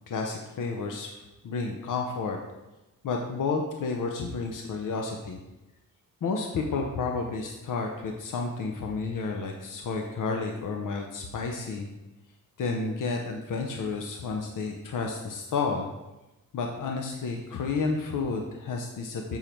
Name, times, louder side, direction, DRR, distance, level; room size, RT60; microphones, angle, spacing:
voice 1, 0.1-1.1 1.4-2.4 3.0-5.4 6.2-11.9 12.6-15.9 16.5-19.4, left 4 dB, 70° left, 2 dB, 0.8 m, -31 dB
7.0 x 5.6 x 4.5 m, 1.0 s
wide cardioid pair, 145°, 32 cm